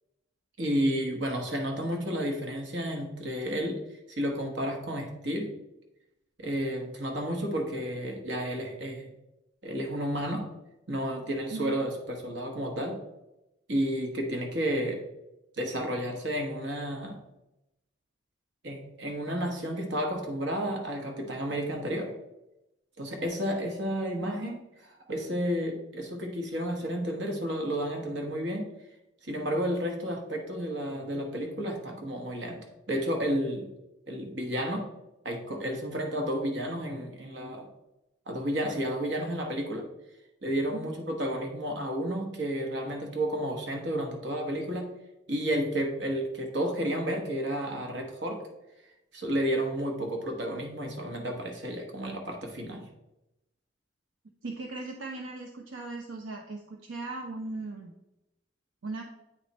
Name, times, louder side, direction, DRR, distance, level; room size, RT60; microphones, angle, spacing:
voice 1, 0.6-3.8 4.1-5.5 6.4-9.1 9.6-10.5 10.9-13.0 13.7-15.0 15.6-17.2 18.6-22.1 23.0-28.6 29.2-33.7 34.1-34.9 35.2-37.7 38.3-39.9 40.4-44.9 45.3-48.4 49.1-52.8, equal, 65° right, 2 dB, 1.2 m, -31 dB
voice 2, 54.4-57.9 58.8-59.0, right 2 dB, 85° right, 2 dB, 0.6 m, -38 dB
8.7 x 3.2 x 4.1 m, 0.93 s
head